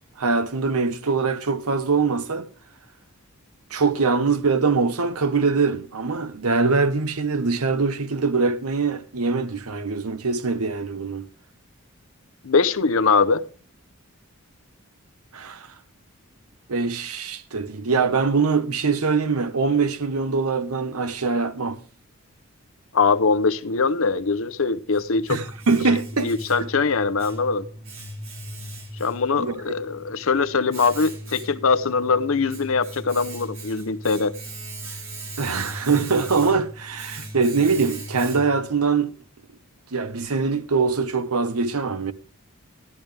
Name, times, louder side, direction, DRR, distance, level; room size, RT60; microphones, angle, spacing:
voice 1, 0.2-2.5 3.7-11.3 15.3-15.7 16.7-21.8 25.3-26.3 26.6-26.7 29.4-29.5 35.4-39.2 39.9-42.1, right 4 dB, 85° right, 1.0 m, -23 dB
voice 2, 12.4-13.4 22.9-25.4 26.2-27.7 29.0-34.3, left 4 dB, 65° left, 0.7 m, -22 dB
Domestic sounds home sounds, 24.4-38.8, right 1 dB, 65° right, 2.6 m, -38 dB
12.5 x 12.0 x 3.4 m
head